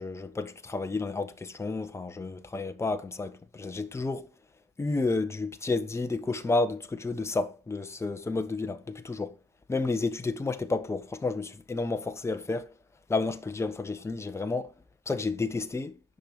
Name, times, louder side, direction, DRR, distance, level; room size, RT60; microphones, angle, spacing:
voice 1, 0.0-4.3 4.8-9.3 9.7-12.7 13.1-14.7 15.1-16.0, left 3 dB, 15° left, 1.3 m, -31 dB
10.0 x 6.7 x 5.5 m
cardioid pair, 110°, 17 cm